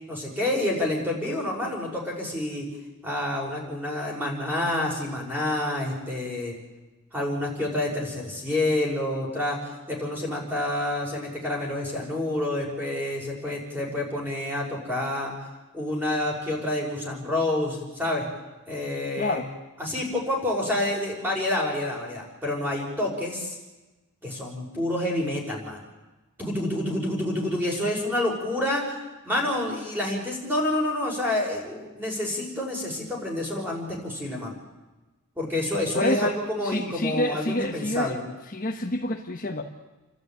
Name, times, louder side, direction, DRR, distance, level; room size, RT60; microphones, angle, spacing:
voice 1, 0.1-2.6 3.0-6.5 7.1-15.5 15.7-18.3 18.7-19.4 19.8-23.6 24.2-25.8 26.4-29.0 29.2-34.5 35.4-38.2, left 1 dB, 10° right, -2 dB, 5.9 m, -28 dB
voice 2, 19.2-19.5 35.9-36.3 36.6-38.2 38.5-39.6, left 1 dB, 40° left, 3 dB, 1.2 m, -27 dB
30.0 x 12.5 x 9.3 m, 1.1 s
head